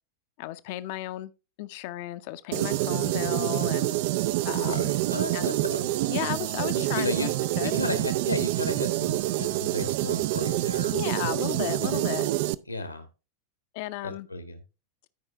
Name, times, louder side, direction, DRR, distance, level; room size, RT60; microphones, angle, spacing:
voice 1, 0.4-1.3 1.6-3.9 4.4-5.0 5.3-5.5 6.1-7.3 7.6-7.8 10.9-12.3 13.7-14.3, left 16 dB, 50° left, 0.6 m, -34 dB
sound 1, 2.5-12.5, right 16 dB, 50° right, 0.4 m, -27 dB
voice 2, 4.6-5.9 6.7-7.3 7.6-10.9 11.8-12.1 12.7-13.1 14.0-14.6, left 1 dB, 85° left, 1.5 m, -34 dB
12.0 x 5.4 x 3.5 m
figure-of-eight pair, 90°, 0 cm